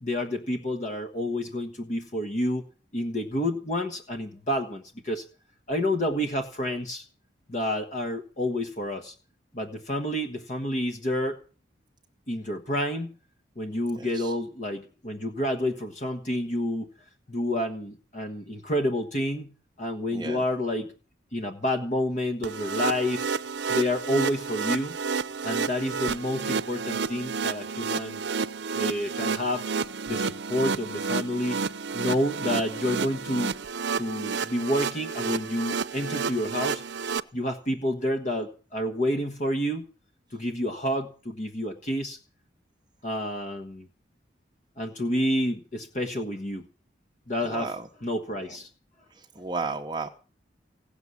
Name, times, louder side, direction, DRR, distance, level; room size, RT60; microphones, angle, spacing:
voice 1, 0.0-2.6 2.9-5.2 5.7-7.1 7.5-9.1 9.5-11.4 12.3-13.1 13.6-16.9 17.3-19.5 19.8-20.9 21.3-23.3 23.7-25.0 25.4-28.2 28.7-29.7 30.1-31.6 31.9-33.5 33.9-36.8 37.3-39.9 40.3-42.2 43.0-43.9 44.8-46.6 47.3-47.7 48.0-48.7, left 1 dB, 40° left, 6 dB, 1.2 m, -29 dB
voice 2, 14.0-14.3 20.1-20.4 47.4-47.8 49.2-50.1, right 3 dB, 25° right, 3 dB, 0.8 m, -33 dB
sound 1, 22.4-37.2, right 5 dB, 70° right, 0.6 m, -30 dB
16.5 x 7.0 x 9.6 m, 0.38 s
head